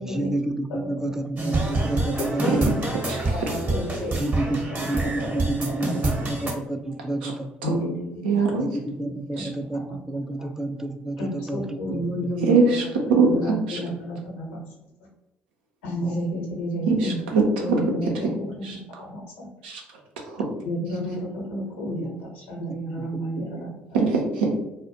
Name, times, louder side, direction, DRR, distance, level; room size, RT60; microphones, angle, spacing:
voice 1, 0.0-3.2 4.2-7.5 8.6-12.3 23.0-23.1 23.4-23.5, right 2 dB, 10° right, 7 dB, 0.3 m, -30 dB
sound 1, 1.4-6.5, right 2 dB, 30° right, 0.8 m, -27 dB
voice 2, 2.4-2.8 3.2-4.6 5.2-5.5 7.6-8.6 9.3-9.4 9.7-10.0 10.4-10.5 11.2-12.6 13.1-14.6 15.8-17.2 17.6-19.5 20.6-24.0, equal, 85° left, -2 dB, 0.8 m, -31 dB
voice 3, 8.2-8.6 9.4-9.5 12.5-13.8 16.9-17.8 18.6-18.8 19.6-19.8 20.3-20.4 23.9-24.6, right 4 dB, 85° right, 1 dB, 0.5 m, -22 dB
2.2 x 2.0 x 2.8 m, 0.94 s
hypercardioid pair, 55°, 5 cm